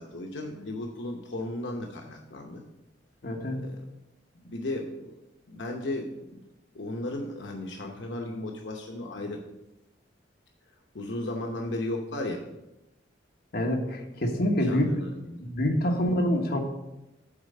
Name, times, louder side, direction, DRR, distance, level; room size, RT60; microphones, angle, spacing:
voice 1, 0.0-2.6 3.6-3.8 4.3-5.2 5.5-6.4 6.7-9.4 10.9-12.4 14.6-15.5, left 1 dB, 80° left, 1 dB, 0.9 m, -35 dB
voice 2, 3.2-3.6 13.5-14.9 15.4-16.6, left 1 dB, 60° left, 1 dB, 1.2 m, -26 dB
8.7 x 4.0 x 6.5 m, 0.97 s
head